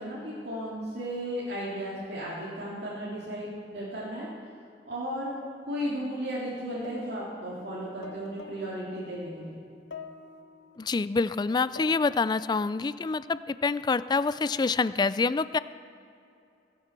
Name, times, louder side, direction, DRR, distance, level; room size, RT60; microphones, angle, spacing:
voice 1, 0.0-4.3 4.8-5.4 5.6-9.6, equal, 65° right, -7 dB, 2.7 m, -35 dB
sound 1, 5.4-6.5 6.8-10.8 11.5-13.1, left 3 dB, 75° left, 0.8 m, -47 dB
voice 2, 10.8-15.6, left 4 dB, 25° left, 15 dB, 0.3 m, -26 dB
21.5 x 7.7 x 6.0 m, 2.6 s
head